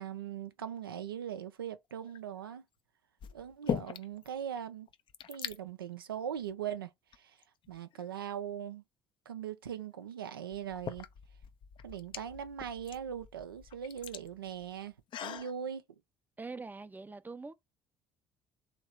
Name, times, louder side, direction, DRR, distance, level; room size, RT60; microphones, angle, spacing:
voice 1, 0.0-2.6 3.3-4.9 5.3-6.9 7.2-7.4 7.7-8.8 9.3-11.1 11.8-14.9 15.2-15.8, right 9 dB, 85° right, 0.4 m, -40 dB
sound 1, 2.0-2.4 3.2-4.3 4.6-4.7 4.9-5.6 6.4-6.5 7.1-8.0 9.7-9.8 10.5-15.5, left 9 dB, 45° left, 0.5 m, -41 dB
voice 2, 16.4-17.5, right 4 dB, 15° right, 0.5 m, -43 dB
3.0 x 2.9 x 4.3 m
figure-of-eight pair, 55°, 11 cm